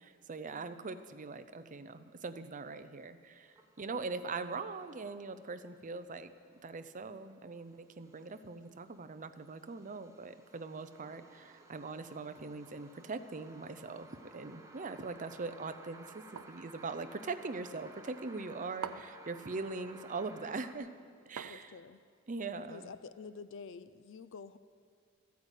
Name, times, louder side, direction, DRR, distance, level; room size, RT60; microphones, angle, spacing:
voice 1, 0.0-6.3 6.6-20.9 21.3-21.8 22.3-22.9, right 3 dB, 40° right, 10 dB, 0.6 m, -42 dB
sound 1, 3.5-20.7, right 2 dB, 15° right, 1.1 m, -57 dB
sound 2, 16.4-16.7 18.8-19.3 21.4-22.0, right 7 dB, 90° right, 0.5 m, -44 dB
voice 2, 21.5-22.0 22.7-24.6, left 5 dB, 60° left, 14 dB, 0.5 m, -48 dB
14.0 x 9.4 x 8.2 m, 2.1 s
head